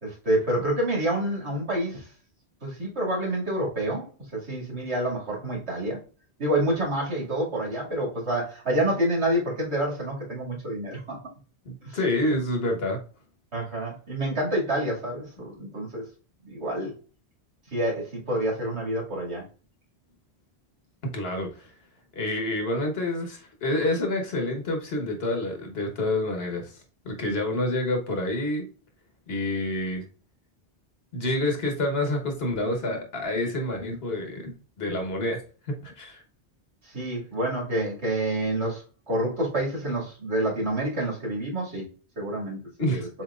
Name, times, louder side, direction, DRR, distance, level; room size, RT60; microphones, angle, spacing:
voice 1, 0.0-2.1 2.6-4.1 4.3-6.0 6.4-11.2 11.8-12.0 13.5-16.0 16.4-16.9 17.7-19.4 27.3-27.6 36.9-38.8 39.1-41.9 42.2-43.0, right 1 dB, 80° right, -3 dB, 2.5 m, -28 dB
voice 2, 11.6-13.0 21.0-21.7 22.1-28.6 29.3-30.0 31.1-35.4 35.8-36.2 42.8-43.1, left 1 dB, 65° left, 3 dB, 1.4 m, -28 dB
7.3 x 2.9 x 2.4 m, 0.36 s
omnidirectional pair, 1.1 m